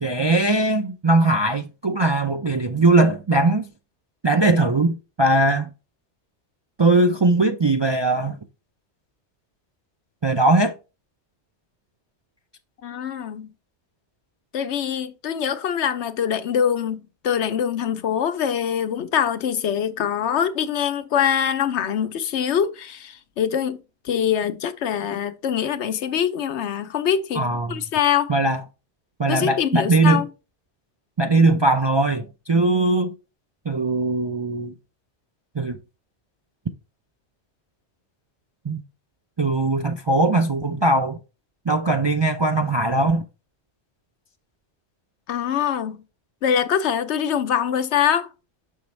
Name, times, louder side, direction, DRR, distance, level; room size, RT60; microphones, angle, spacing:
voice 1, 0.0-3.7 4.2-5.7 6.8-8.4 10.2-10.7 27.3-27.8 28.3-28.6 29.2-30.2 31.2-33.1 33.7-34.7 35.6-35.8 38.6-38.8 39.4-41.2 41.7-43.2, right 2 dB, 40° right, 0.3 m, -20 dB
voice 2, 12.8-13.5 14.5-23.8 24.1-28.3 29.3-30.3 45.3-46.0 46.4-48.3, left 8 dB, 80° left, 1.0 m, -24 dB
6.9 x 5.4 x 3.1 m
omnidirectional pair, 1.2 m